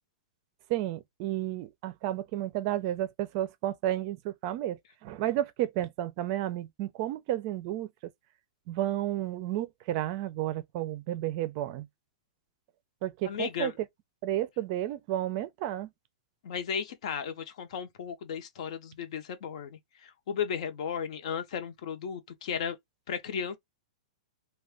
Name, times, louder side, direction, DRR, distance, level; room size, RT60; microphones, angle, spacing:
voice 1, 0.7-7.9 8.7-11.9 13.0-13.7 14.2-15.9, right 13 dB, 40° right, 0.4 m, -32 dB
voice 2, 13.2-13.7 16.4-22.8 23.1-23.6, left 7 dB, 60° left, 0.9 m, -35 dB
2.4 x 2.3 x 3.5 m
hypercardioid pair, 150°, 4 cm